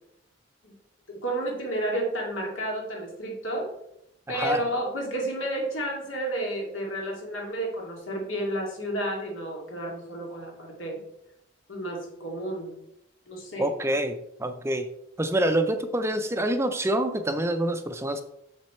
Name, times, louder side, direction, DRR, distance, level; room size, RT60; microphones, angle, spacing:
voice 1, 1.1-3.7 4.3-11.0 11.7-12.7 13.3-13.7, right 1 dB, 80° left, -1 dB, 2.4 m, -31 dB
voice 2, 4.3-4.6 13.6-14.9 15.2-18.2, right 1 dB, 15° right, 8 dB, 0.4 m, -26 dB
6.8 x 6.2 x 4.3 m, 0.80 s
head